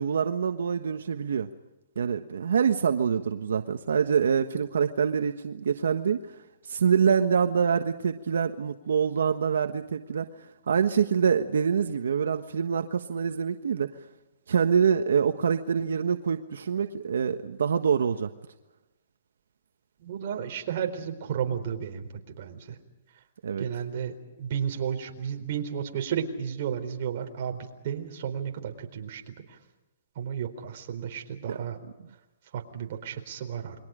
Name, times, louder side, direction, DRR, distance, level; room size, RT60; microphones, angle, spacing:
voice 1, 0.0-1.5 2.0-6.2 6.7-13.9 14.5-18.3 23.4-23.6 31.5-31.6, right 7 dB, 85° right, 7 dB, 1.3 m, -25 dB
voice 2, 20.0-22.1 22.4-22.8 23.6-24.1 24.4-29.3 30.2-31.8 32.5-33.8, right 8 dB, 45° right, 4 dB, 4.1 m, -33 dB
29.5 x 23.5 x 5.1 m, 1.0 s
hypercardioid pair, 160°, 0 cm